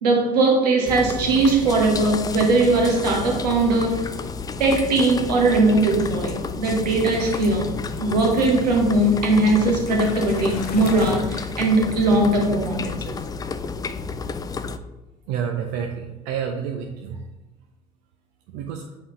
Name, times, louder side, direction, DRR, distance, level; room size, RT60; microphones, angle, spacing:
voice 1, 0.0-4.1 4.6-7.7 8.0-13.1, right 2 dB, 75° right, 1 dB, 1.2 m, -20 dB
sound 1, 0.9-14.8, left 5 dB, 20° left, 0.4 m, -31 dB
sound 2, 6.6-11.6, left 5 dB, 50° left, 0.9 m, -37 dB
voice 2, 15.3-17.2 18.5-18.9, right 7 dB, 60° right, 4 dB, 0.6 m, -29 dB
7.8 x 4.0 x 3.2 m, 1.1 s
figure-of-eight pair, 60°, 21 cm